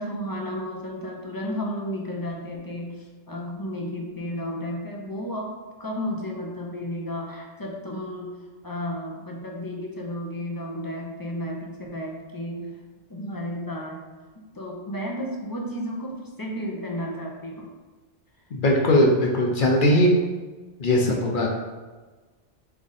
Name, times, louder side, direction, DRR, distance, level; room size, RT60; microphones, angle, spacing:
voice 1, 0.0-5.5 5.8-8.3 8.6-12.7 13.1-14.0 14.5-17.7, equal, 35° left, -1 dB, 0.3 m, -32 dB
voice 2, 18.5-20.2 20.8-21.5, left 1 dB, 50° left, 0 dB, 0.8 m, -19 dB
3.7 x 3.4 x 4.1 m, 1.3 s
omnidirectional pair, 1.2 m